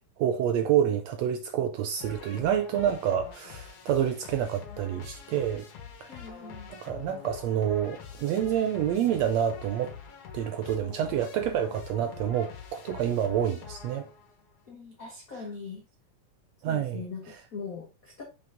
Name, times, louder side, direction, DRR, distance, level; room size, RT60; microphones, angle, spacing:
voice 1, 0.2-5.7 6.0-6.2 6.7-9.9 10.3-14.1 16.6-17.0, right 9 dB, 80° right, 1.5 m, -28 dB
sound 1, 2.0-14.4, left 7 dB, 70° left, 2.8 m, -45 dB
voice 2, 6.1-6.8 14.7-15.8 16.7-18.2, left 5 dB, 90° left, 0.7 m, -41 dB
6.1 x 5.7 x 3.8 m
omnidirectional pair, 3.6 m